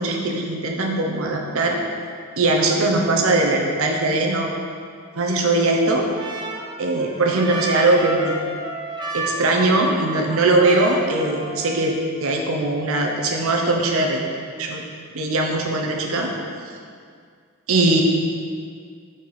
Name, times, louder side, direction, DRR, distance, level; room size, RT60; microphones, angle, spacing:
voice 1, 0.0-1.8 2.4-4.5 5.2-6.1 6.8-8.4 9.1-11.9 12.2-14.2 14.6-14.8 15.1-16.3 17.7-18.0, right 2 dB, 70° right, 1 dB, 0.8 m, -20 dB
Trumpet, 5.3-12.1, right 2 dB, 20° right, 0.5 m, -33 dB
4.9 x 4.3 x 5.6 m, 2.2 s
head